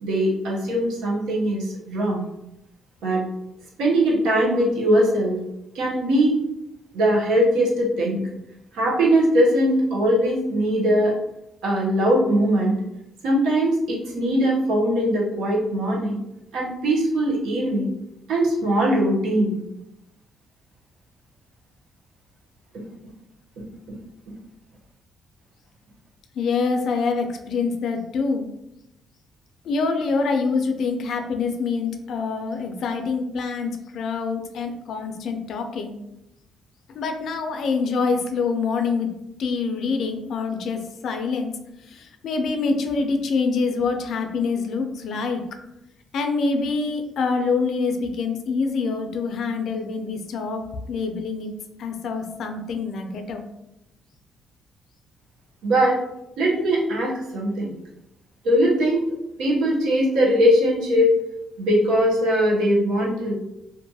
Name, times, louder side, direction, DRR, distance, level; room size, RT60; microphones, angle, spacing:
voice 1, 0.0-2.2 3.0-3.3 3.8-5.4 5.7-6.4 6.9-8.2 8.7-11.1 11.6-12.7 13.2-16.2 16.5-17.9 18.3-19.5 55.6-56.0 56.4-57.7 58.4-59.1 59.4-61.1 61.6-63.3, equal, 85° right, -4 dB, 0.7 m, -20 dB
voice 2, 26.4-28.5 29.6-35.9 36.9-39.1 39.4-41.5 41.9-45.4 46.1-51.5 51.8-53.5, left 4 dB, 70° left, 5 dB, 0.3 m, -25 dB
2.5 x 2.2 x 2.7 m, 0.85 s
cardioid pair, 90°, 0 cm